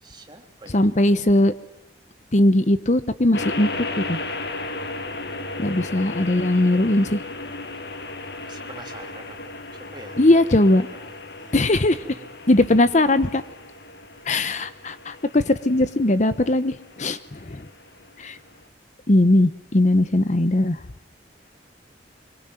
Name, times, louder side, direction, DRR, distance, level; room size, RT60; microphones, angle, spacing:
voice 1, 0.0-1.2 8.5-12.3, right 2 dB, 25° right, 3 dB, 3.5 m, -46 dB
voice 2, 0.7-1.5 2.3-3.7 4.0-4.2 5.6-7.2 10.2-10.9 11.5-12.0 12.5-13.4 14.3-17.6 18.2-18.4 19.1-20.8, left 1 dB, 40° left, 13 dB, 0.9 m, -19 dB
sound 1, 3.3-18.6, left 2 dB, 60° left, 2.1 m, -35 dB
25.5 x 23.5 x 9.2 m, 0.89 s
head